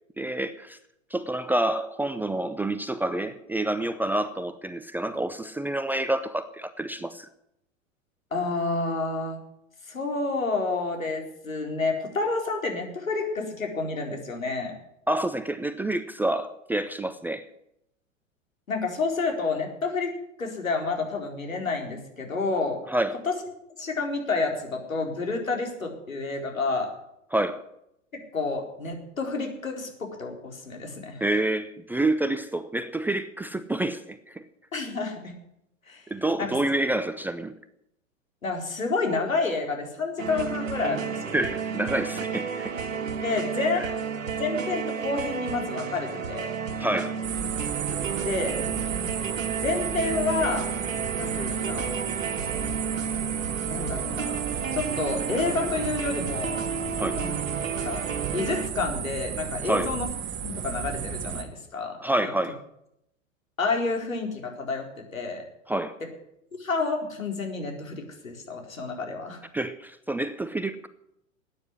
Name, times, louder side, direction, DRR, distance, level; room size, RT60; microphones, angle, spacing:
voice 1, 0.2-0.8 1.1-7.3 15.1-17.5 22.9-23.2 27.3-27.6 31.2-34.4 36.1-37.5 41.3-42.8 43.8-43.9 46.8-47.2 57.0-57.2 59.6-59.9 62.0-62.6 65.7-66.0 69.5-70.9, right 1 dB, 5° right, 0.5 m, -28 dB
voice 2, 8.3-9.4 9.9-14.7 18.7-20.1 20.4-22.8 23.3-23.4 23.8-26.9 28.3-31.2 34.7-35.3 35.9-36.0 36.4-36.6 38.4-41.4 43.2-44.0 44.4-46.5 48.2-48.6 49.6-50.7 51.1-52.0 53.6-56.6 57.1-57.4 57.8-58.1 58.3-60.1 60.4-62.3 63.6-64.9 65.1-65.4 66.6-69.4, left 3 dB, 85° left, 4.4 m, -29 dB
sound 1, 40.2-58.7, right 6 dB, 80° right, 1.6 m, -32 dB
sound 2, 47.2-61.4, right 8 dB, 30° right, 1.9 m, -33 dB
14.5 x 9.5 x 9.8 m
figure-of-eight pair, 100°, 39 cm